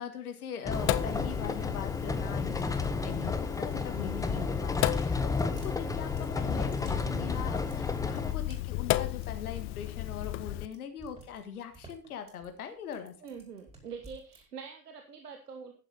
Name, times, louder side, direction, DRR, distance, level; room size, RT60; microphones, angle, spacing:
voice 1, 0.0-6.1 6.4-13.1, left 7 dB, 65° left, 7 dB, 1.7 m, -41 dB
Sink (filling or washing), 0.7-10.6, left 17 dB, 30° left, 0.5 m, -35 dB
sound 1, 0.7-8.3, left 3 dB, 5° left, 1.0 m, -32 dB
sound 2, 4.9-14.4, right 2 dB, 15° right, 4.6 m, -54 dB
voice 2, 13.2-15.7, right 6 dB, 75° right, 5 dB, 1.5 m, -45 dB
11.0 x 10.0 x 4.0 m, 0.34 s
figure-of-eight pair, 75°, 47 cm